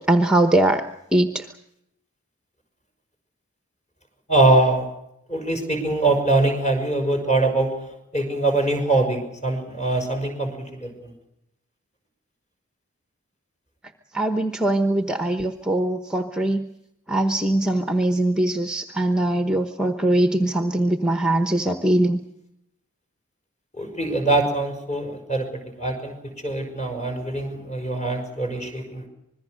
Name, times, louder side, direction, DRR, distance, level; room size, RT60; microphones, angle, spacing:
voice 1, 0.1-0.8 1.1-1.5 14.1-16.7 17.1-22.2, right 1 dB, 5° right, 7 dB, 0.9 m, -21 dB
voice 2, 4.3-4.8 5.3-7.7 8.1-11.1 23.8-26.1 26.4-29.1, right 2 dB, 30° left, 3 dB, 5.8 m, -23 dB
26.0 x 21.0 x 6.5 m, 0.81 s
head